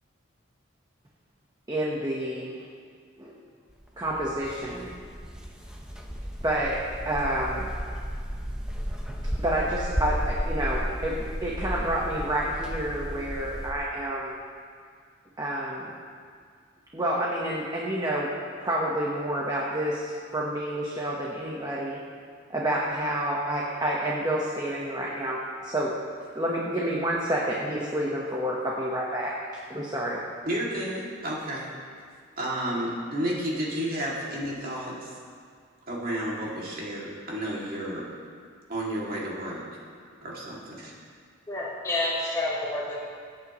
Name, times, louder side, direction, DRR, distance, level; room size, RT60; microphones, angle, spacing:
voice 1, 1.7-2.6 3.2-3.3 4.0-4.9 6.4-7.7 9.4-14.4 15.4-15.9 16.9-18.3 18.6-22.1 22.5-26.0 26.3-29.3 29.7-30.2, right 1 dB, 20° right, -4 dB, 1.2 m, -29 dB
sound 1, 3.7-13.7, equal, 5° right, 0.9 m, -33 dB
voice 2, 30.4-31.7 32.4-35.1 35.9-38.0 38.7-39.6 40.2-40.9, right 1 dB, 45° right, -5 dB, 2.6 m, -31 dB
voice 3, 41.5-42.9, left 2 dB, 15° left, -9 dB, 3.4 m, -29 dB
25.5 x 8.9 x 3.2 m, 2.1 s
head